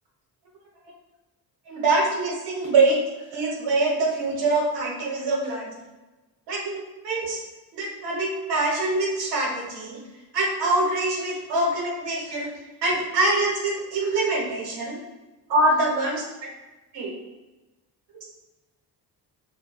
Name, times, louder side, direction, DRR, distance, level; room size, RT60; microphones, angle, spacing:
voice 1, 1.7-3.0 3.3-5.8 6.5-7.4 7.8-10.0 10.3-12.5 12.8-15.0 15.5-16.5 16.9-17.1, right 2 dB, 85° right, -3 dB, 1.0 m, -24 dB
4.6 x 2.2 x 2.3 m, 1.1 s
cardioid pair, 85°, 40 cm